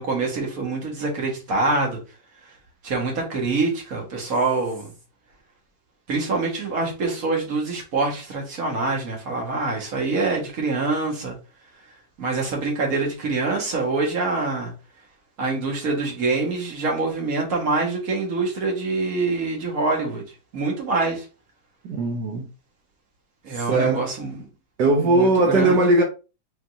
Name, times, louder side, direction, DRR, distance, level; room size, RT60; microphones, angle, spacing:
voice 1, 0.0-2.0 2.8-4.9 6.1-11.4 12.2-14.7 15.4-20.3 20.5-21.3 23.4-24.4 25.0-25.8, right 3 dB, 55° right, 1.9 m, -25 dB
voice 2, 21.8-22.5 23.7-24.1 24.8-26.0, right 2 dB, 80° right, 1.4 m, -19 dB
4.5 x 4.0 x 2.6 m
omnidirectional pair, 1.8 m